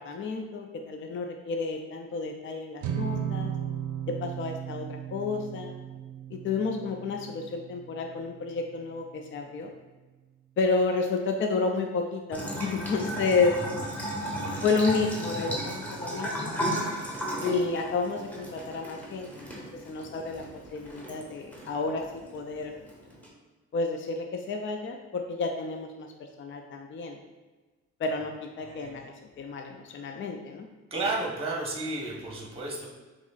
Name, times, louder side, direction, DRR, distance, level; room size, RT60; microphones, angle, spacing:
voice 1, 0.0-3.5 4.2-5.7 6.3-9.7 10.6-13.6 14.6-16.5 17.4-19.5 19.9-20.4 20.7-22.7 23.7-27.2 28.0-30.7, left 4 dB, 40° left, 3 dB, 0.4 m, -31 dB
sound 1, 2.8-9.2, right 9 dB, 75° right, 0.6 m, -36 dB
Bathtub (filling or washing) / Trickle dribble, 12.3-23.3, equal, 5° left, 1.2 m, -35 dB
voice 2, 28.6-29.0 30.0-30.1 30.9-32.9, right 2 dB, 20° right, -2 dB, 1.1 m, -32 dB
6.0 x 3.0 x 2.4 m, 1.2 s
cardioid pair, 90°, 30 cm